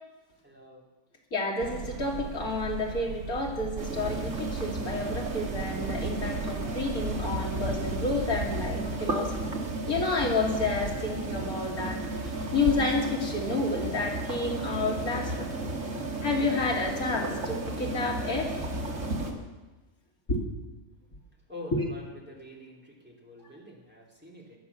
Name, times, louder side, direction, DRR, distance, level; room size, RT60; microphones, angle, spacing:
voice 1, 0.4-0.8 21.5-24.6, left 1 dB, 5° right, -2 dB, 3.0 m, -46 dB
voice 2, 1.3-9.3 9.9-12.0 12.5-15.5 16.2-18.6 20.3-20.4 21.7-21.9, left 3 dB, 80° left, -1 dB, 3.2 m, -30 dB
sound 1, 1.6-9.0, right 5 dB, 80° right, 1.3 m, -39 dB
sound 2, 3.8-19.3, right 2 dB, 55° right, 2.3 m, -33 dB
18.5 x 11.0 x 7.0 m, 1.2 s
omnidirectional pair, 1.5 m